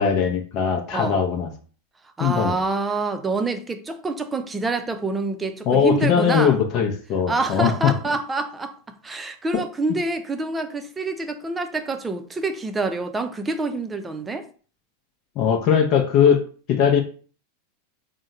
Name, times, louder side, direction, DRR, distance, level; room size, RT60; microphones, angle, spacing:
voice 1, 0.0-1.5 2.2-2.6 5.7-7.9 9.5-9.6 15.4-16.4 16.7-17.0, left 7 dB, 45° left, 0.7 m, -20 dB
voice 2, 2.2-6.6 7.3-8.8 9.0-14.5, right 3 dB, 15° right, 0.5 m, -26 dB
3.6 x 2.2 x 4.0 m
hypercardioid pair, 95°, 0 cm